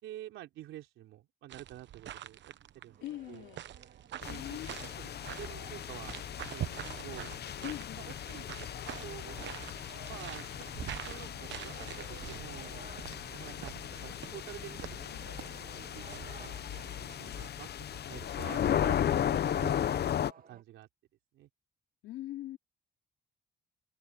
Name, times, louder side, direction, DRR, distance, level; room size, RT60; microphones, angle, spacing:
voice 1, 0.0-2.5 2.8-3.0 3.3-3.4 4.1-5.1 5.4-6.2 6.5-7.4 8.0-8.5 9.0-9.4 10.1-10.5 11.0-12.8 13.3-13.8 14.0-15.2 15.8-16.6 17.2-19.1 19.3-19.9 20.5-20.9 21.3-21.5, right 14 dB, 90° right, 3.9 m, -48 dB
sound 1, 1.5-17.5, right 11 dB, 65° right, 1.0 m, -46 dB
sound 2, 2.9-6.4 7.4-17.3 17.9-20.6, right 6 dB, 45° right, 2.7 m, -57 dB
voice 2, 3.0-3.6 4.3-4.7 7.6-8.2 22.0-22.6, left 14 dB, 90° left, 3.0 m, -41 dB
sound 3, 4.2-20.3, left 10 dB, 55° left, 0.9 m, -36 dB
cardioid pair, 90°, 20 cm